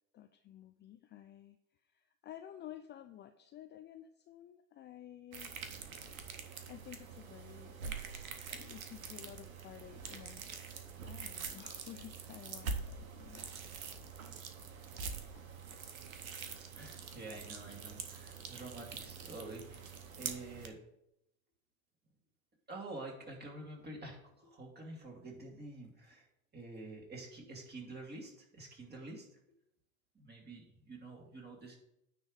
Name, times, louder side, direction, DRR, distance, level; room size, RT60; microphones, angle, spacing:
voice 1, 0.1-5.5 6.7-10.7 11.0-13.5 15.3-15.5, left 11 dB, 25° left, 7 dB, 0.4 m, -53 dB
sound 1, 5.3-20.7, right 5 dB, 85° right, 1.0 m, -45 dB
voice 2, 16.3-20.8 22.7-26.3 26.5-29.3 30.1-31.8, right 2 dB, 25° right, -1 dB, 2.6 m, -48 dB
9.5 x 3.5 x 6.5 m, 0.82 s
hypercardioid pair, 85°, 41 cm